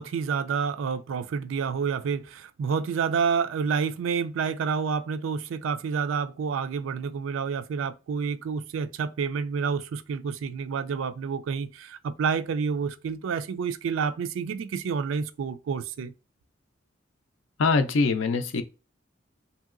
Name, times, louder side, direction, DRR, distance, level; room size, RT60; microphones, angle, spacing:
voice 1, 0.0-16.1, right 6 dB, 80° right, 0.3 m, -29 dB
voice 2, 17.6-18.6, left 4 dB, 70° left, 0.4 m, -23 dB
3.0 x 2.8 x 2.4 m
head